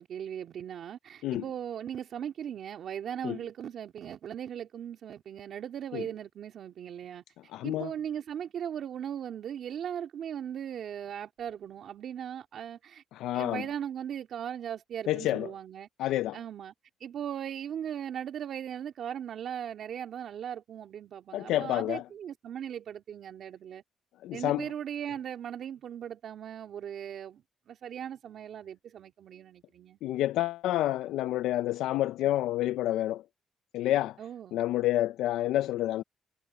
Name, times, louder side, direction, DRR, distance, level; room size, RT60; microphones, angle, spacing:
voice 1, 0.0-13.0 13.3-16.7 17.0-23.8 24.3-30.0 34.2-34.6, right 9 dB, 65° right, 2.8 m, -38 dB
voice 2, 7.5-7.9 13.2-13.6 15.1-15.5 16.0-16.4 21.3-22.0 24.2-24.6 30.0-33.2 33.7-34.2 34.5-36.0, left 14 dB, 90° left, 0.4 m, -28 dB
cardioid pair, 90°, 0 cm